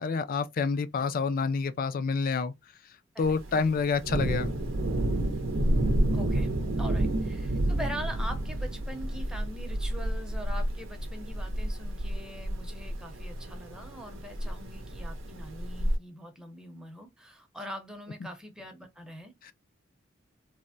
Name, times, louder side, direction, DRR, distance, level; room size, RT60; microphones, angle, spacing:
voice 1, 0.0-2.5 3.2-4.5 19.4-19.5, left 5 dB, 45° left, 0.4 m, -28 dB
voice 2, 3.1-3.7 6.1-6.5 6.8-19.5, equal, 5° right, 0.7 m, -43 dB
Thunder, 3.2-16.0, right 1 dB, 70° right, 0.6 m, -30 dB
3.2 x 2.1 x 2.5 m
head